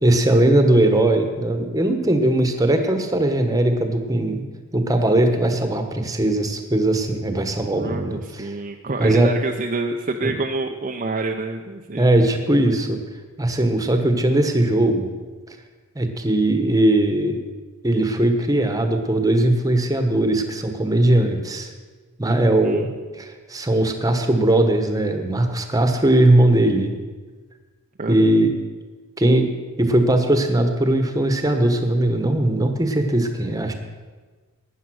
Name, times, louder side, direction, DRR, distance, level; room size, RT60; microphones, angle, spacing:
voice 1, 0.0-4.4 4.7-8.5 9.0-9.3 10.2-10.3 12.0-13.0 13.4-15.1 15.9-17.4 17.8-21.7 22.2-22.9 23.2-27.0 28.1-28.5 29.2-29.5 29.8-33.7, right 1 dB, 15° right, 6 dB, 1.2 m, -19 dB
voice 2, 7.7-12.1 22.6-22.9 28.0-28.3, right 3 dB, 35° right, 3 dB, 0.6 m, -27 dB
12.5 x 9.4 x 6.3 m, 1.4 s
head